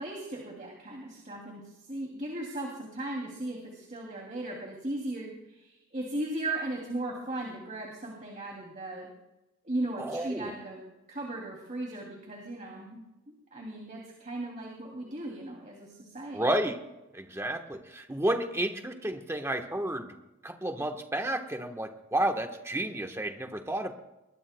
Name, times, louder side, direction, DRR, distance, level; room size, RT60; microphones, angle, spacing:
voice 1, 0.0-9.1 9.6-10.8 11.1-16.5, right 1 dB, 35° right, -1 dB, 2.7 m, -37 dB
voice 2, 10.0-10.5 16.3-16.8 17.1-20.2 20.4-23.9, right 1 dB, 10° right, 4 dB, 1.2 m, -31 dB
22.0 x 20.5 x 2.2 m, 0.96 s
head